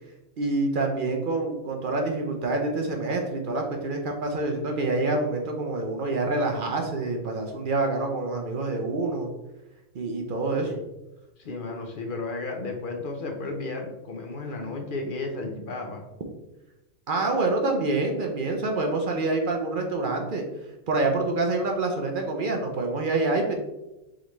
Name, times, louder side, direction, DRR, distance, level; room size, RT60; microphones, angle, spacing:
voice 1, 0.4-9.3 9.9-10.7 17.1-20.4 20.9-23.5, right 2 dB, 55° right, 2 dB, 0.6 m, -26 dB
voice 2, 11.4-16.1, left 3 dB, 50° left, 2 dB, 0.7 m, -33 dB
4.9 x 3.3 x 3.0 m, 0.99 s
omnidirectional pair, 1.3 m